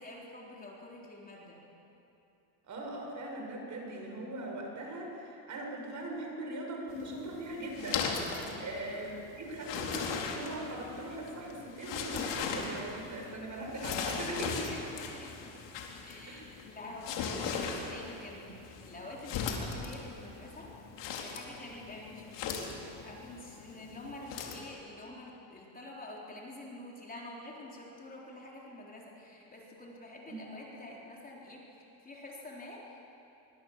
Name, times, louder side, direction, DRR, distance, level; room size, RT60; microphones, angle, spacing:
voice 1, 0.0-1.6 8.3-8.7 14.7-15.5 16.0-20.8 21.2-31.7 32.0-33.0, left 2 dB, 20° left, -3 dB, 3.9 m, -47 dB
voice 2, 2.6-8.1 8.6-9.1 9.4-14.8 16.3-16.5 30.3-30.4, right 1 dB, 40° right, 1 dB, 6.5 m, -40 dB
sound 1, 6.9-24.7, left 6 dB, 65° left, 3.9 m, -39 dB
26.5 x 23.5 x 7.4 m, 2.9 s
cardioid pair, 135°, 47 cm